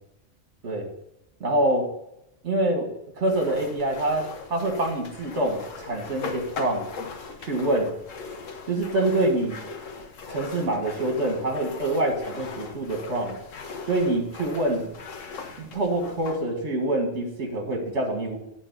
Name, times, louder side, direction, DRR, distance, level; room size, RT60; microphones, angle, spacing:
voice 1, 1.4-1.9 2.4-2.9 3.2-6.9 7.4-7.9 8.7-9.6 10.3-13.4 13.9-14.9 15.6-18.4, right 1 dB, 65° right, 2 dB, 2.1 m, -25 dB
sound 1, 3.2-16.4, left 4 dB, 90° left, 1.4 m, -39 dB
9.0 x 4.3 x 6.6 m, 0.82 s
omnidirectional pair, 1.3 m